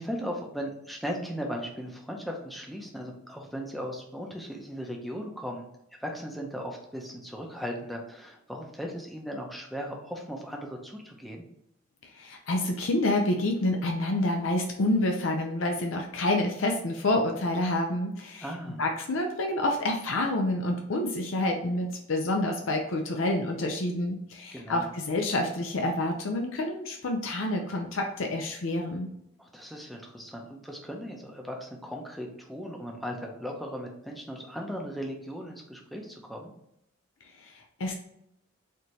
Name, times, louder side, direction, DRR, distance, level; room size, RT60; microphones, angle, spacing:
voice 1, 0.0-5.7 6.0-11.4 18.4-18.8 24.5-24.9 29.4-36.5, equal, ahead, 0 dB, 0.6 m, -37 dB
voice 2, 12.1-18.5 18.8-29.1 37.4-37.9, left 1 dB, 75° left, 2 dB, 0.6 m, -28 dB
4.3 x 2.8 x 3.1 m, 0.78 s
head